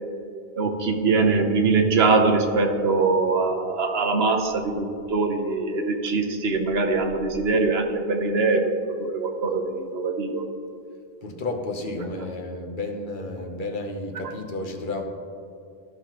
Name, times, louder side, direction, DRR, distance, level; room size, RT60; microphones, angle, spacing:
voice 1, 0.5-8.7 9.0-10.4, right 3 dB, 85° right, 4 dB, 1.1 m, -22 dB
voice 2, 11.2-15.0, left 2 dB, 55° left, 3 dB, 1.0 m, -31 dB
14.0 x 5.7 x 3.0 m, 2.5 s
omnidirectional pair, 1.0 m